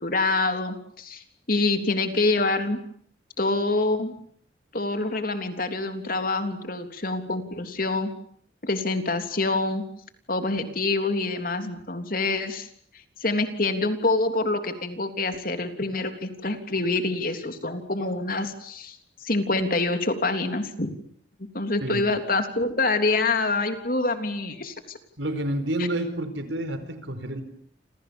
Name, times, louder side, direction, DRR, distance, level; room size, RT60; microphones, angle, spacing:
voice 1, 0.0-2.8 3.4-4.1 4.7-8.1 8.6-9.8 10.3-12.7 13.2-20.9 21.5-25.0, left 2 dB, 50° left, 7 dB, 3.4 m, -26 dB
voice 2, 25.2-27.4, right 1 dB, 85° right, 10 dB, 4.9 m, -29 dB
29.0 x 28.0 x 7.1 m, 0.62 s
head